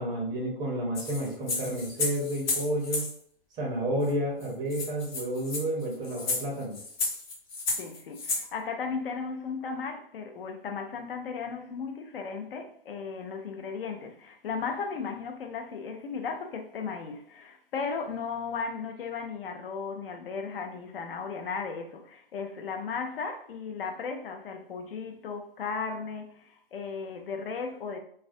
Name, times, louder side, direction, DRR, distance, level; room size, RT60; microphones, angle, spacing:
voice 1, 0.0-3.1 3.6-6.8, right 1 dB, 15° right, 0.5 m, -31 dB
sound 1, 1.0-3.1 4.1-4.2 4.4-4.5 4.7-8.5, left 3 dB, 50° left, 1.0 m, -32 dB
voice 2, 7.8-28.0, left 5 dB, 70° left, 0.5 m, -36 dB
2.3 x 2.1 x 2.5 m
hypercardioid pair, 125°, 30 cm